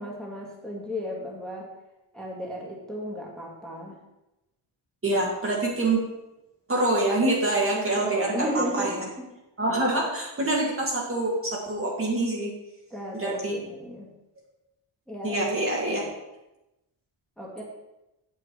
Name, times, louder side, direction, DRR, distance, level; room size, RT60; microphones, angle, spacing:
voice 1, 0.0-1.7 2.1-4.0 7.7-9.3 12.9-14.1 15.1-15.5 17.4-17.6, equal, ahead, -3 dB, 2.1 m, -34 dB
voice 2, 5.0-6.0 6.7-8.9 9.6-12.5 13.1-13.6 15.2-16.0, right 2 dB, 25° right, -3 dB, 1.8 m, -25 dB
8.4 x 7.8 x 4.6 m, 0.97 s
wide cardioid pair, 130°, 49 cm